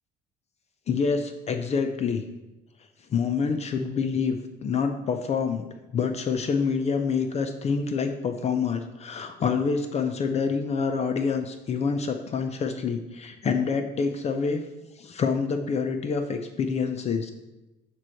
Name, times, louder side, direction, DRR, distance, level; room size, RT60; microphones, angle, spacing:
voice 1, 0.9-2.3 3.1-14.6 15.0-17.3, left 5 dB, 40° left, 7 dB, 0.5 m, -27 dB
8.5 x 3.1 x 4.4 m, 1.0 s
cardioid pair, 110°, 17 cm